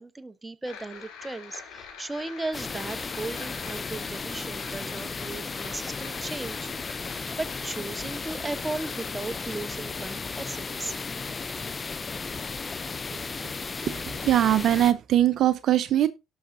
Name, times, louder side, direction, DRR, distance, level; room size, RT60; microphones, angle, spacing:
voice 1, 0.0-6.7 7.4-11.0, right 2 dB, 15° right, 0.9 m, -36 dB
sound 1, 0.6-11.6, left 6 dB, 70° left, 3.3 m, -46 dB
sound 2, 2.5-14.9, left 4 dB, 30° left, 0.5 m, -35 dB
voice 2, 13.8-16.1, right 12 dB, 55° right, 0.6 m, -22 dB
18.0 x 6.4 x 2.6 m
hypercardioid pair, 60°, 0 cm